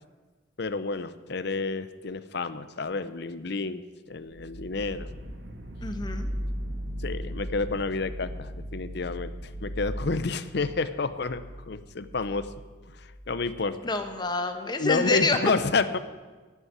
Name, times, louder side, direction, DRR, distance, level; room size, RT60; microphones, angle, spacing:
voice 1, 0.6-5.1 7.0-9.3 9.6-12.5 12.9-13.9 14.8-16.0, left 3 dB, 60° left, 12 dB, 0.7 m, -30 dB
sound 1, 4.3-14.2, equal, 60° right, 1.4 m, -38 dB
voice 2, 5.8-6.3 13.8-15.4, left 3 dB, 20° left, 6 dB, 1.0 m, -27 dB
11.0 x 8.2 x 9.8 m, 1.3 s
head